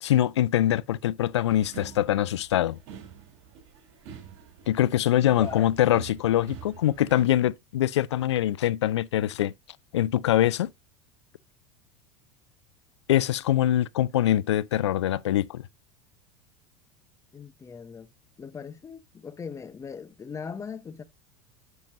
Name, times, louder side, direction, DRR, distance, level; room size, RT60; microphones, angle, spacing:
voice 1, 0.0-2.8 4.7-9.5 9.9-10.7 13.1-15.6, left 12 dB, 70° left, 0.4 m, -23 dB
sound 1, 1.5-7.2, right 8 dB, 55° right, 3.5 m, -46 dB
voice 2, 17.3-18.1 18.4-21.0, left 6 dB, 20° left, 1.0 m, -39 dB
11.0 x 6.8 x 2.7 m
figure-of-eight pair, 75°, 15 cm